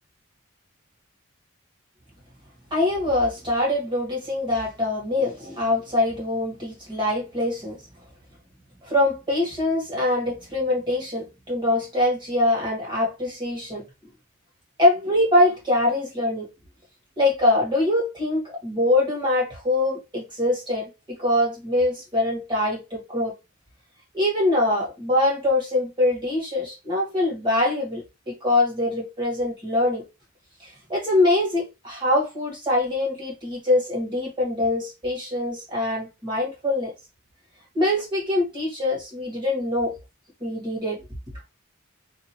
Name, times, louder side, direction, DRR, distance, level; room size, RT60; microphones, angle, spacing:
voice 1, 2.7-7.8 8.8-13.8 14.8-16.5 17.2-20.9 21.2-23.3 24.1-30.0 30.6-36.9 37.7-39.9 40.4-41.0, left 1 dB, 20° right, 1.5 m, -23 dB
2.8 x 2.4 x 2.8 m
head